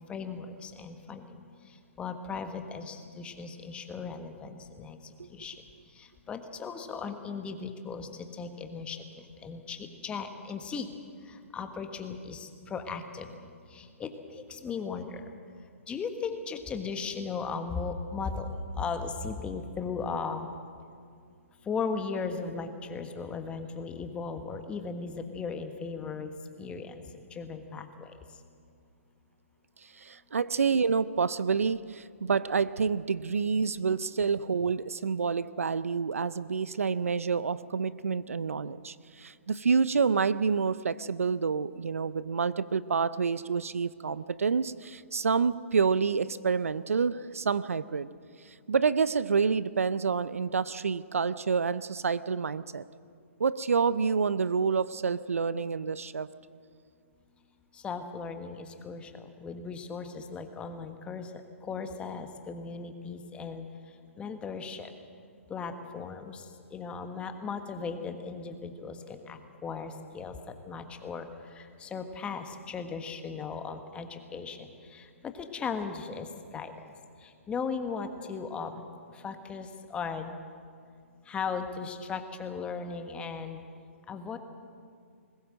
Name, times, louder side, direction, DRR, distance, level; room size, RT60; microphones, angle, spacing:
voice 1, 0.1-5.6 5.9-10.9 11.2-13.3 13.7-15.3 15.9-20.5 21.6-26.3 26.6-28.1 57.7-61.3 61.6-64.9 65.5-76.7 77.2-80.4 81.2-83.6 84.1-84.4, left 5 dB, 15° left, 7 dB, 1.4 m, -37 dB
voice 2, 30.0-48.1 48.7-52.8 53.4-56.3, right 5 dB, 80° right, 17 dB, 0.6 m, -28 dB
21.0 x 17.0 x 7.7 m, 2.3 s
hypercardioid pair, 130°, 7 cm